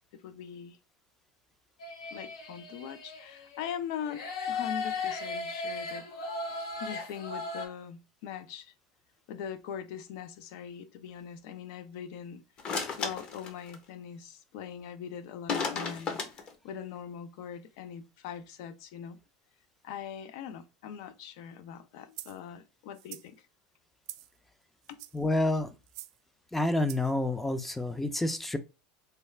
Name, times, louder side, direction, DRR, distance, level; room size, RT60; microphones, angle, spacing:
voice 1, 0.1-0.8 2.1-6.0 6.8-8.7 9.3-12.4 13.0-19.2 19.8-23.4 24.9-25.0, left 8 dB, 70° left, 0.5 m, -41 dB
sound 1, 1.8-3.8 4.0-7.7, left 4 dB, 85° left, 0.9 m, -37 dB
sound 2, 12.6-13.8 15.5-16.5, left 5 dB, 40° left, 0.8 m, -33 dB
sound 3, 22.1-22.4 22.9-23.3 24.0-24.4 24.8-25.3 25.9-26.2 26.9-27.1, right 15 dB, 70° right, 0.3 m, -45 dB
voice 2, 25.1-25.7 26.5-28.6, left 1 dB, 5° left, 0.4 m, -28 dB
3.2 x 2.4 x 3.2 m
supercardioid pair, 115°, 3 cm